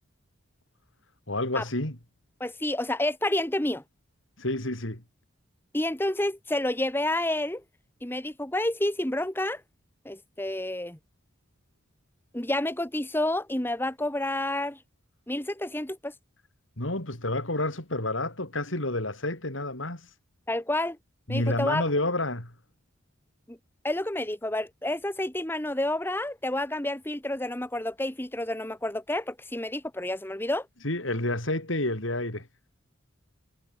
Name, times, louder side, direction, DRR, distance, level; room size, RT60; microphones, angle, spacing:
voice 1, 1.3-2.0 4.4-5.0 16.8-20.2 21.3-22.5 30.8-32.5, left 1 dB, 75° left, 5.6 m, -29 dB
voice 2, 2.4-3.8 5.7-7.6 8.0-9.6 10.0-11.0 12.3-14.8 15.3-16.1 20.5-21.0 21.3-21.8 23.5-23.6 23.8-30.7, left 1 dB, 10° left, 1.3 m, -29 dB
head